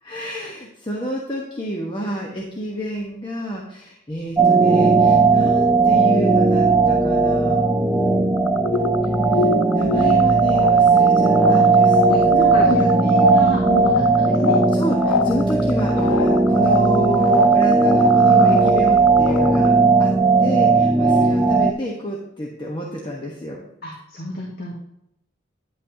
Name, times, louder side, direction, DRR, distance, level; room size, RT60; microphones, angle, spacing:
voice 1, 0.0-7.6 9.3-9.5 9.7-12.0 12.2-12.3 12.7-12.9 14.7-19.7 20.0-20.1 20.4-23.6, equal, 25° left, -2 dB, 1.1 m, -29 dB
sound 1, 4.4-21.7, right 4 dB, 10° right, 0.4 m, -16 dB
sound 2, 8.4-19.7, left 6 dB, 90° left, 0.3 m, -25 dB
voice 2, 11.5-14.6 21.0-21.5 23.8-24.7, equal, 50° left, -3 dB, 1.7 m, -29 dB
10.5 x 8.2 x 2.8 m, 0.78 s
head